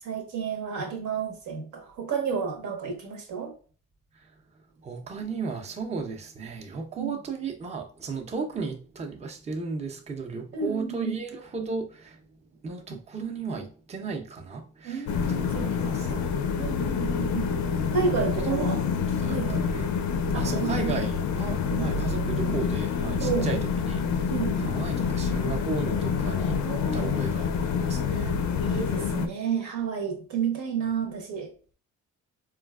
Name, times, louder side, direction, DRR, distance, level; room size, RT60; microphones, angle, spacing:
voice 1, 0.0-3.5 7.0-7.2 10.5-11.1 12.9-13.0 14.8-16.3 16.6-17.5 17.9-18.8 19.3-19.7 20.3-21.0 21.7-21.9 23.2-23.5 24.3-24.7 26.6-27.1 28.6-31.5, right 6 dB, 70° right, 0.9 m, -31 dB
voice 2, 4.8-12.2 12.6-15.1 15.4-16.2 18.4-19.9 20.3-24.3 24.6-26.6 26.9-28.4 28.7-28.8, right 4 dB, 20° right, 0.5 m, -35 dB
sound 1, 15.1-29.3, left 6 dB, 70° left, 0.4 m, -27 dB
3.8 x 2.3 x 2.2 m
cardioid pair, 90°, 30 cm